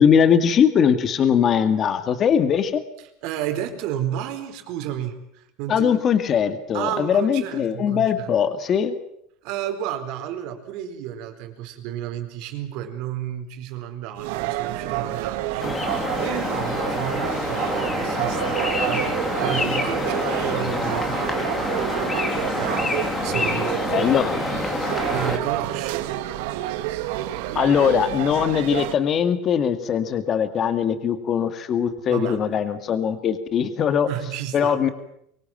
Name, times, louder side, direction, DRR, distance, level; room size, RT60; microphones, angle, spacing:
voice 1, 0.0-2.8 5.7-9.0 23.5-24.3 27.5-34.1 34.5-34.9, left 8 dB, 30° left, 10 dB, 2.1 m, -21 dB
voice 2, 3.2-6.0 6.7-8.3 9.4-21.8 22.5-22.9 23.2-24.3 25.1-26.1 32.1-32.6 34.1-34.9, right 10 dB, 60° right, 7 dB, 4.3 m, -32 dB
sound 1, 14.2-28.9, right 14 dB, 80° right, 1.9 m, -29 dB
sound 2, 15.6-25.4, left 2 dB, 15° left, 3.3 m, -27 dB
24.0 x 24.0 x 7.6 m, 0.73 s
cardioid pair, 155°, 0 cm